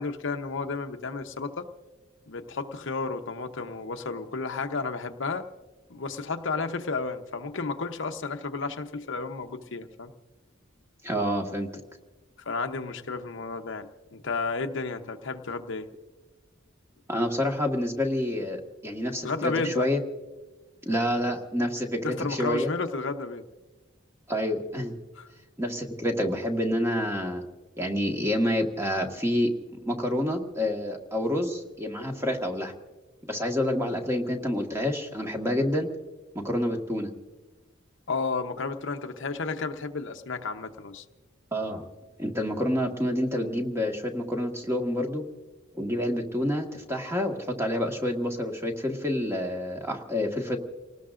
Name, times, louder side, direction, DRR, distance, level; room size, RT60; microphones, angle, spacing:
voice 1, 0.0-1.7 2.3-5.5 5.9-10.1 12.4-15.9 19.2-19.9 22.0-23.4 25.2-25.3 38.1-41.0, left 4 dB, 70° left, 6 dB, 0.9 m, -32 dB
voice 2, 11.0-11.7 17.1-20.0 20.8-22.0 22.3-22.7 24.3-25.0 25.6-27.4 27.8-29.5 29.8-32.7 33.3-35.9 36.3-37.1 41.5-41.8 42.2-45.2 45.7-50.6, left 1 dB, 15° right, 2 dB, 1.6 m, -28 dB
29.0 x 19.0 x 2.5 m, 1.2 s
head